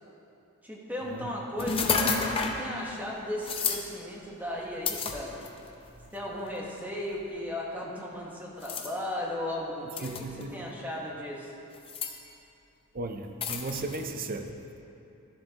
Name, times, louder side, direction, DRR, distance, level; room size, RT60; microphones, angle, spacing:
voice 1, 0.6-5.4 6.1-11.6, left 1 dB, 10° right, -3 dB, 1.1 m, -36 dB
sound 1, 1.6-2.6 3.4-3.8 4.9-5.7 6.5-6.6 8.6-8.9 10.0-10.4 11.7-12.1 13.4-14.0, left 4 dB, 25° left, 0.6 m, -30 dB
voice 2, 10.0-10.7 12.9-14.5, right 2 dB, 40° right, 6 dB, 0.5 m, -36 dB
13.0 x 7.4 x 2.9 m, 2.7 s
head